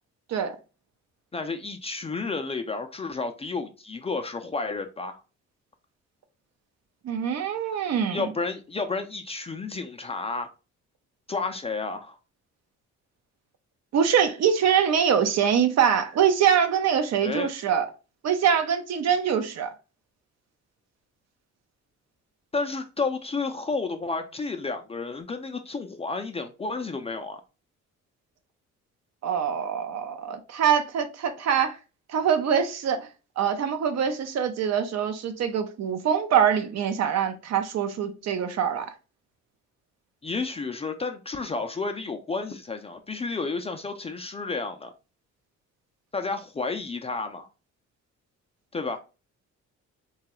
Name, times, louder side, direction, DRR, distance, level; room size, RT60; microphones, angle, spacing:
voice 1, 1.3-5.2 8.1-10.5 11.3-12.2 17.2-17.5 22.5-27.4 40.2-44.9 46.1-47.5 48.7-49.0, left 3 dB, 20° left, 0.4 m, -31 dB
voice 2, 7.0-8.3 13.9-17.9 18.2-19.7 29.2-31.8 32.1-33.1 33.4-38.9, right 8 dB, 60° right, 0.6 m, -24 dB
3.0 x 2.3 x 2.9 m
cardioid pair, 90°, 30 cm